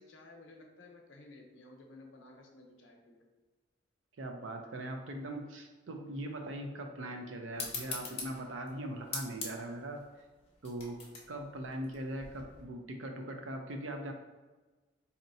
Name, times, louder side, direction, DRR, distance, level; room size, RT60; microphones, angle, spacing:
voice 1, 0.0-3.3, left 2 dB, 85° left, 2 dB, 0.7 m, -55 dB
voice 2, 4.2-10.1 10.6-11.0 11.3-14.1, right 1 dB, 90° right, 4 dB, 0.5 m, -40 dB
sound 1, 7.5-12.6, left 4 dB, 30° left, 0.6 m, -43 dB
4.2 x 2.8 x 2.7 m, 1.2 s
head